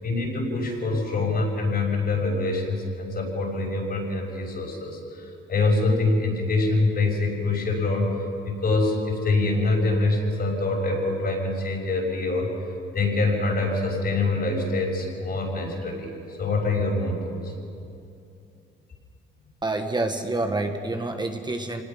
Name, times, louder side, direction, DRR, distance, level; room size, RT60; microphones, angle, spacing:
voice 1, 0.0-8.1 8.4-12.5 12.9-17.5, left 2 dB, 50° left, 0 dB, 6.5 m, -25 dB
voice 2, 19.6-21.8, right 2 dB, 20° right, 4 dB, 1.5 m, -27 dB
26.5 x 19.0 x 5.9 m, 2.6 s
cardioid pair, 90°, 20 cm